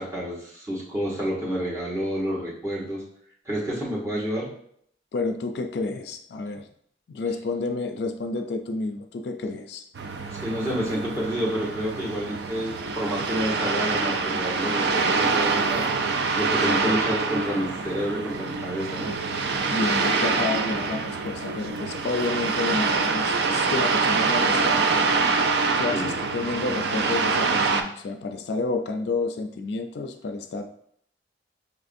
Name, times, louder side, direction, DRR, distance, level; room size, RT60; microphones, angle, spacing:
voice 1, 0.0-3.0 3.4-4.5 10.3-15.9 16.4-19.1 25.9-26.2, equal, 15° right, -6 dB, 1.0 m, -29 dB
voice 2, 5.1-6.7 7.1-9.8 16.7-17.0 19.7-24.9 25.8-30.6, left 3 dB, 75° left, 6 dB, 0.4 m, -30 dB
sound 1, 9.9-27.8, right 4 dB, 75° right, 0.4 m, -25 dB
5.8 x 2.5 x 2.5 m, 0.65 s
head